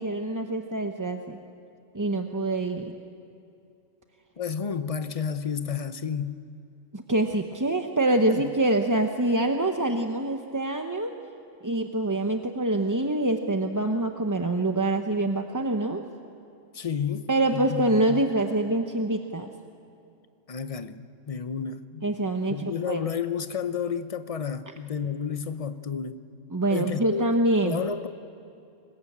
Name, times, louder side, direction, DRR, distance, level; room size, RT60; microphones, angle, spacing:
voice 1, 0.0-1.4 1.9-3.0 6.9-11.2 11.6-16.0 17.3-19.5 22.0-23.1 26.5-27.8, right 2 dB, 20° right, 0.7 m, -25 dB
voice 2, 4.4-6.4 8.3-8.4 16.7-18.2 20.5-22.1 22.5-26.2 26.7-27.2 27.6-28.1, left 7 dB, 35° left, 0.7 m, -31 dB
25.0 x 21.0 x 8.6 m
omnidirectional pair, 1.3 m